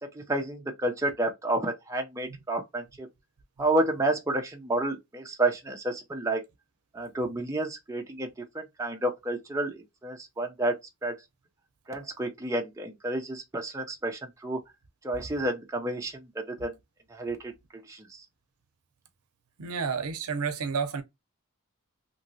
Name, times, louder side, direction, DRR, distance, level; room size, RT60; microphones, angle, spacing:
voice 1, 0.0-3.1 3.6-6.4 6.9-10.8 11.0-11.2 11.9-14.6 15.0-16.7 17.1-17.5 17.8-18.2, right 1 dB, 15° right, 0.6 m, -30 dB
voice 2, 19.6-21.0, right 5 dB, 90° right, 0.6 m, -30 dB
2.9 x 2.8 x 2.7 m
head